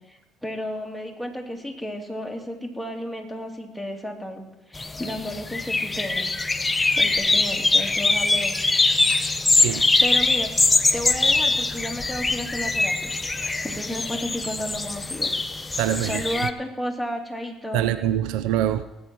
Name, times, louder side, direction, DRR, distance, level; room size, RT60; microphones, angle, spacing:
voice 1, 0.1-6.3 6.6-8.6 9.6-10.5 10.9-15.3 16.0-17.9, equal, ahead, 0 dB, 3.0 m, -33 dB
sound 1, 4.8-16.5, left 3 dB, 20° left, 0.9 m, -23 dB
voice 2, 9.1-9.8 13.4-13.6 15.8-16.2 17.7-18.8, right 12 dB, 75° right, 13 dB, 0.6 m, -25 dB
18.5 x 9.0 x 4.6 m, 0.98 s
hypercardioid pair, 60°, 0 cm